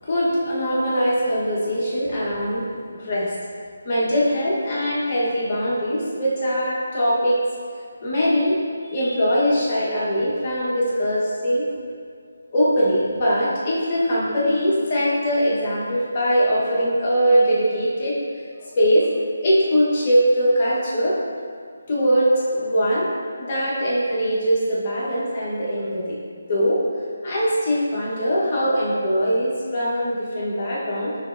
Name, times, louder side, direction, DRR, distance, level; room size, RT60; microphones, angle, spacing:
voice 1, 0.0-3.3 3.8-7.4 8.0-8.6 8.9-11.7 12.5-18.2 18.7-19.1 19.4-21.2 21.9-23.1 23.4-26.2 26.5-26.8 27.2-31.2, equal, 35° left, -7 dB, 1.0 m, -21 dB
6.3 x 3.0 x 2.5 m, 2.2 s
figure-of-eight pair, 165°, 0 cm